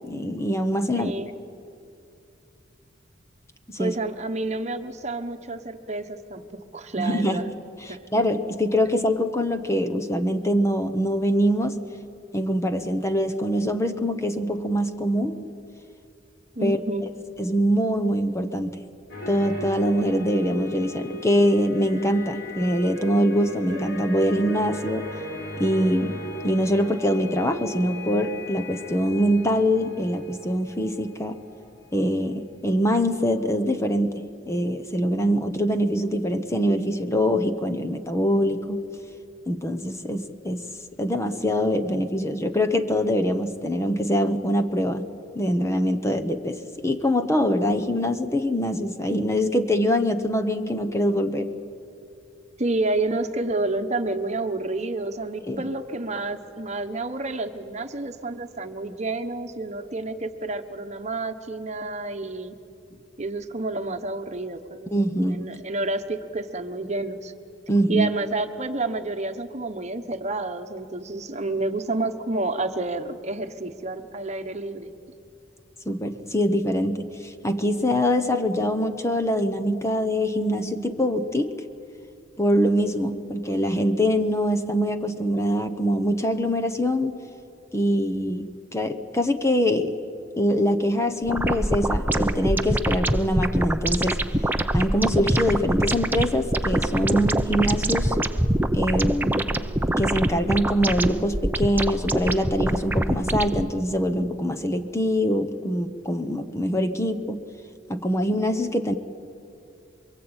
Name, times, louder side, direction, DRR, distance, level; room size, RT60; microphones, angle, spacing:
voice 1, 0.0-1.1 3.7-4.0 7.0-7.4 7.8-11.8 12.3-15.5 16.6-16.8 17.4-18.8 19.3-25.1 25.6-31.4 31.9-38.8 39.5-40.7 41.0-45.1 45.3-51.5 55.5-55.6 64.9-65.5 67.7-68.1 75.9-81.5 82.4-87.2 87.7-90.0 90.4-94.3 94.7-98.2 98.7-99.5 100.0-107.4 107.9-108.9, equal, 15° left, 8 dB, 1.0 m, -24 dB
voice 2, 0.9-1.3 3.8-7.5 7.9-8.0 16.5-17.0 52.6-62.5 63.2-64.9 65.3-67.3 67.9-74.9, right 2 dB, 35° right, 7 dB, 1.2 m, -29 dB
sound 1, 19.1-32.4 32.7-32.9, left 1 dB, 60° left, 6.4 m, -38 dB
sound 2, 91.3-103.6, right 1 dB, 10° right, 0.8 m, -24 dB
27.0 x 23.5 x 9.0 m, 2.6 s
head